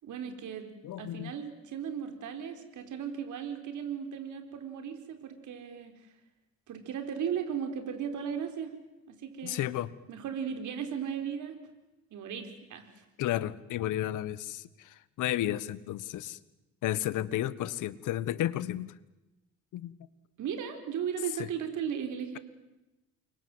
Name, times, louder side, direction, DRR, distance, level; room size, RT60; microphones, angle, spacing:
voice 1, 0.0-0.7 1.0-6.0 6.7-8.7 9.1-9.7 10.1-11.6 12.1-12.9 20.4-22.4, right 8 dB, 75° right, 7 dB, 4.3 m, -36 dB
voice 2, 0.8-1.3 9.4-9.9 13.2-16.4 16.8-18.9 19.7-19.9 21.4-21.5, left 13 dB, 85° left, 17 dB, 1.3 m, -32 dB
29.5 x 24.0 x 7.9 m, 1.0 s
cardioid pair, 90°, 30 cm